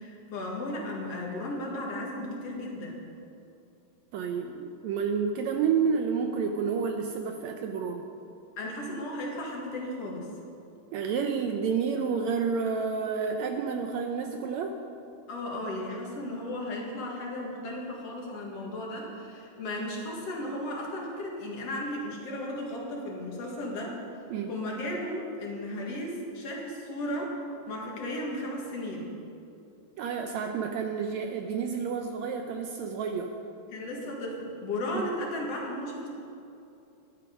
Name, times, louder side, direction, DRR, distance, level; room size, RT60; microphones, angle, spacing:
voice 1, 0.0-3.0 8.6-10.3 15.3-24.0 24.5-27.3 27.7-29.1 33.7-36.1, left 1 dB, 55° left, -2 dB, 2.6 m, -35 dB
voice 2, 4.1-8.1 10.9-14.8 24.3-24.5 30.0-33.3 34.9-35.1, right 6 dB, 80° right, 4 dB, 1.6 m, -30 dB
12.0 x 11.5 x 5.2 m, 2.7 s
omnidirectional pair, 3.8 m